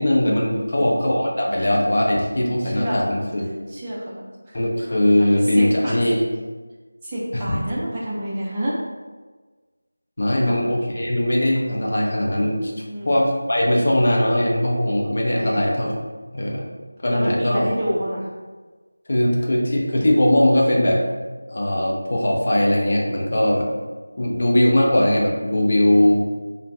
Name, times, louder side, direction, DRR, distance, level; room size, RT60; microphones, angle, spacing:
voice 1, 0.0-3.5 4.5-6.2 7.3-7.6 10.2-12.7 13.1-16.0 16.3-16.7 17.0-17.6 19.1-21.0 21.5-23.7 24.2-26.2, left 1 dB, 50° left, -2 dB, 0.5 m, -20 dB
voice 2, 0.5-0.9 2.6-3.1 3.7-4.6 5.2-6.1 7.0-8.8 10.5-10.6 12.9-13.1 15.4-15.7 17.1-18.3, equal, 15° right, -9 dB, 0.4 m, -29 dB
2.5 x 2.0 x 3.3 m, 1.3 s
figure-of-eight pair, 170°, 0 cm